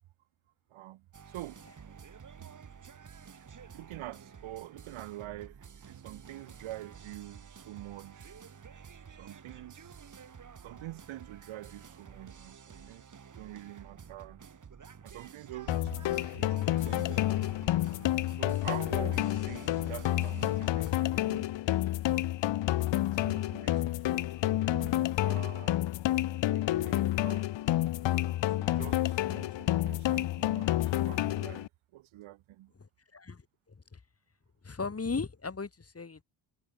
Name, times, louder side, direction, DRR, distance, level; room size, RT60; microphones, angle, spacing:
voice 1, 0.7-1.6 2.4-2.5 3.7-8.4 9.2-10.2 10.6-14.4 15.0-17.4 18.4-22.0 23.2-24.3 24.7-27.8 28.5-31.7 31.9-32.7, right 15 dB, 80° right, 5.3 m, -46 dB
sound 1, 1.1-20.9, right 6 dB, 40° right, 3.3 m, -51 dB
sound 2, 15.7-31.7, left 14 dB, 65° left, 1.4 m, -29 dB
voice 2, 33.7-34.0 34.6-36.2, left 4 dB, 30° left, 7.3 m, -36 dB
supercardioid pair, 75°, 48 cm